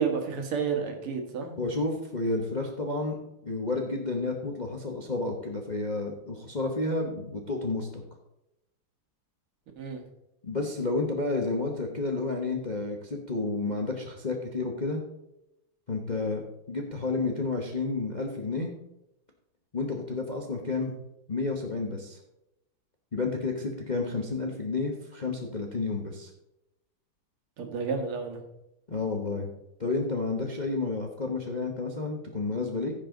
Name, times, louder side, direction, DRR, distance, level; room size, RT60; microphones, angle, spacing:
voice 1, 0.0-1.7 9.8-10.0 27.6-28.4, right 5 dB, 85° right, 4 dB, 2.3 m, -30 dB
voice 2, 1.6-8.0 10.4-15.0 15.9-18.7 19.7-20.9 21.3-22.2 23.1-26.3 28.9-29.5 29.8-32.9, left 3 dB, 35° left, 1 dB, 0.8 m, -31 dB
15.5 x 5.5 x 3.9 m, 0.86 s
omnidirectional pair, 2.4 m